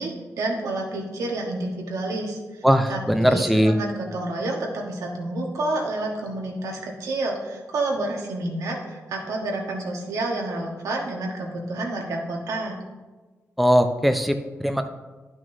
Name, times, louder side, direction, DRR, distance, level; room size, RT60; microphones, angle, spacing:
voice 1, 0.0-2.6 2.9-12.8, right 2 dB, 85° right, 0 dB, 1.3 m, -29 dB
voice 2, 2.6-3.7 13.6-14.9, equal, ahead, 7 dB, 0.6 m, -20 dB
10.5 x 6.1 x 2.7 m, 1.2 s
cardioid pair, 55°, 6 cm